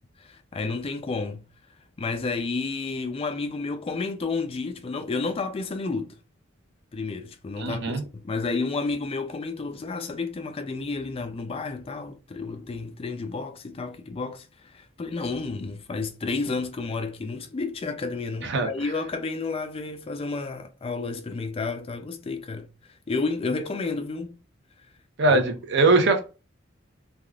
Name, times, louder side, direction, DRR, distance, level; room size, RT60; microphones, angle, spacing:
voice 1, 0.2-1.5 2.0-6.1 6.9-22.7 23.1-24.4 25.3-25.4, left 3 dB, 30° left, 0.4 m, -31 dB
voice 2, 7.6-8.0 18.4-18.7 25.2-26.2, right 3 dB, 60° right, 0.7 m, -21 dB
3.4 x 2.3 x 2.3 m
head